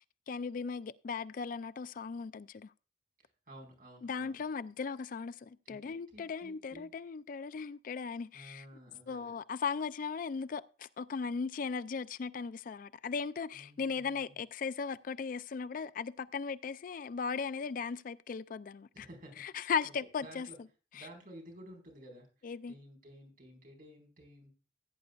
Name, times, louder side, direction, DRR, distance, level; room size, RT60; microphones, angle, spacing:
voice 1, 0.3-2.7 4.0-8.6 9.1-19.1 19.4-20.5 21.0-21.1 22.4-22.7, left 5 dB, 50° left, 0.4 m, -37 dB
voice 2, 3.5-4.4 5.6-6.9 8.3-9.3 13.5-14.4 18.9-19.5 20.2-20.6 20.9-22.3 22.7-24.5, equal, 50° right, 4.6 m, -53 dB
16.0 x 9.4 x 2.4 m
head